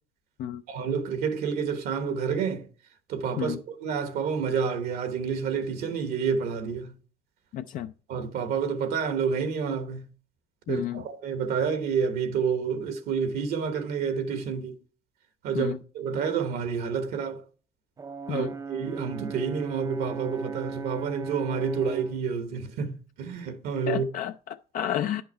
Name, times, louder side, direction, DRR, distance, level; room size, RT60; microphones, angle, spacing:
voice 1, 0.7-2.7 3.1-6.9 8.1-10.1 10.7-14.8 15.4-17.4 18.3-24.1, right 6 dB, 70° right, 1.1 m, -29 dB
voice 2, 7.5-7.9 10.7-11.0 15.5-15.8 18.3-18.5 23.9-25.2, left 11 dB, 55° left, 0.4 m, -31 dB
Brass instrument, 18.0-22.2, right 5 dB, 20° right, 0.5 m, -37 dB
10.0 x 5.7 x 4.3 m
cardioid pair, 105°, 16 cm